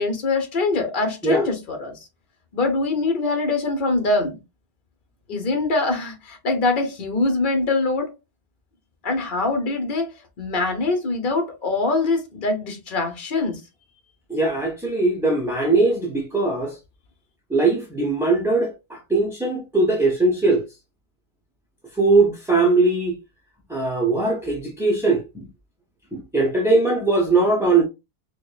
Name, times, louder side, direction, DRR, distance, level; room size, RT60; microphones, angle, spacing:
voice 1, 0.0-2.0 2.5-4.4 5.3-8.1 9.0-10.1 10.4-13.6, left 3 dB, 55° left, 1.1 m, -23 dB
voice 2, 14.3-16.7 17.5-20.6 21.9-23.2 23.7-25.5 26.1-27.8, right 3 dB, 5° right, 0.5 m, -20 dB
4.5 x 2.2 x 2.4 m
omnidirectional pair, 1.0 m